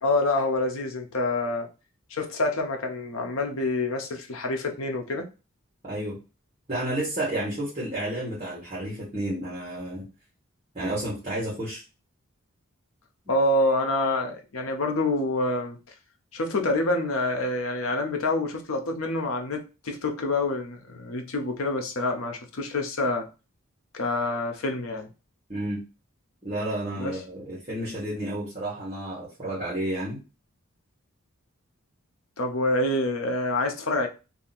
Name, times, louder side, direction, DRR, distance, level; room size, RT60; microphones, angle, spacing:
voice 1, 0.0-1.7 2.1-5.3 13.3-15.8 16.3-23.3 23.9-25.1 26.9-27.2 32.4-34.1, left 2 dB, 75° left, 0.8 m, -27 dB
voice 2, 5.8-6.2 6.7-10.1 10.7-11.8 13.2-13.3 25.5-25.8 26.4-30.2, right 1 dB, 30° right, 1.4 m, -31 dB
2.8 x 2.7 x 4.1 m
head